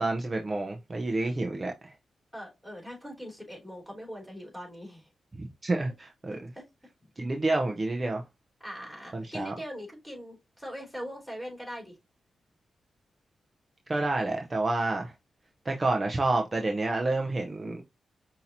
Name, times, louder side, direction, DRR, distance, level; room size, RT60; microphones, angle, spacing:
voice 1, 0.0-1.9 5.4-6.5 7.2-8.2 9.1-9.5 13.9-15.1 15.6-17.8, right 2 dB, 30° right, 0.7 m, -29 dB
voice 2, 2.3-5.1 6.5-6.6 8.6-11.9, equal, ahead, 3.2 m, -41 dB
5.6 x 2.8 x 2.7 m
cardioid pair, 65°, 0 cm